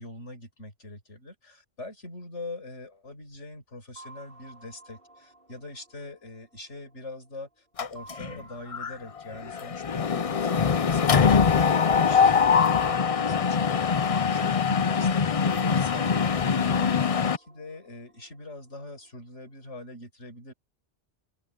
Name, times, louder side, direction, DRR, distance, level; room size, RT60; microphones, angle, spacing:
voice 1, 0.0-16.1 16.5-20.5, left 2 dB, 70° left, 5.7 m, -43 dB
sound 1, 4.0-7.3 8.0-10.9 12.0-15.1 16.0-19.1, right 2 dB, 50° right, 6.2 m, -52 dB
Mechanisms, 7.8-8.4 8.7-8.9 9.2-17.4, left 6 dB, 40° left, 0.5 m, -23 dB
open air
omnidirectional pair, 1.2 m